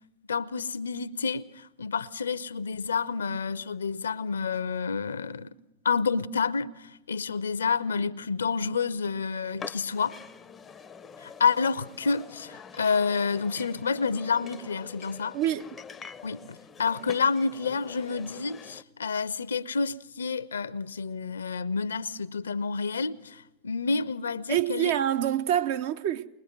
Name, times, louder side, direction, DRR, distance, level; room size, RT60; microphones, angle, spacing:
voice 1, 0.3-5.5 5.8-10.2 11.2-15.4 16.2-24.9, left 5 dB, 70° left, 0.7 m, -29 dB
sound 1, 9.6-18.8, left 6 dB, 20° left, 0.6 m, -46 dB
voice 2, 15.3-15.7 24.5-26.3, right 11 dB, 50° right, 0.8 m, -26 dB
21.0 x 21.0 x 6.1 m
figure-of-eight pair, 90°, 0 cm